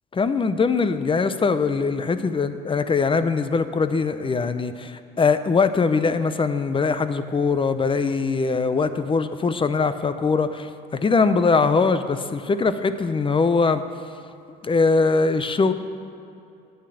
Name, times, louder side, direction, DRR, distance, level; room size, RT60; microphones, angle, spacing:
voice 1, 0.1-4.7 5.2-10.5 10.9-13.8 14.6-15.7, left 4 dB, 25° left, 11 dB, 0.7 m, -21 dB
10.0 x 8.2 x 7.9 m, 2.6 s
supercardioid pair, 85°, 21 cm